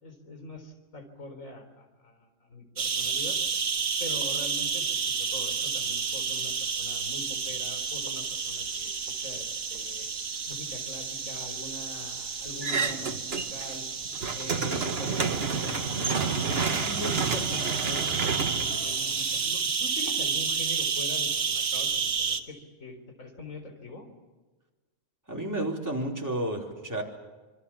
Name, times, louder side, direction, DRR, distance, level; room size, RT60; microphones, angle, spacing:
voice 1, 0.0-3.4 4.0-4.8 5.2-8.9 9.2-10.1 10.5-13.9 14.3-18.1 18.5-24.1, left 2 dB, 80° left, 5 dB, 4.4 m, -42 dB
sound 1, 2.8-22.4, right 5 dB, 85° right, 1.9 m, -31 dB
sound 2, 12.6-13.8 14.1-19.4, right 5 dB, 50° right, 1.6 m, -30 dB
voice 2, 25.3-27.0, right 1 dB, 15° right, -1 dB, 4.3 m, -31 dB
26.0 x 24.5 x 7.4 m, 1.3 s
omnidirectional pair, 1.4 m